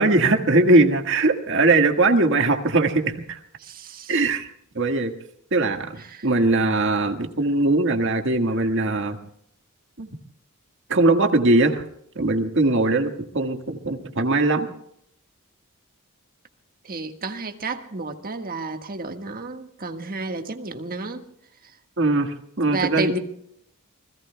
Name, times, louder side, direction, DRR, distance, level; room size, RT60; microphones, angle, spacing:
voice 1, 0.0-3.4 4.1-4.5 4.8-5.1 5.5-9.2 10.0-10.1 10.9-11.8 12.2-14.7 22.0-23.1, right 2 dB, 60° right, 6 dB, 1.7 m, -20 dB
voice 2, 3.6-4.2 6.0-6.3 16.8-21.3 21.6-21.7 22.6-23.2, right 3 dB, 40° right, 5 dB, 1.6 m, -31 dB
28.0 x 21.0 x 2.3 m, 0.70 s
head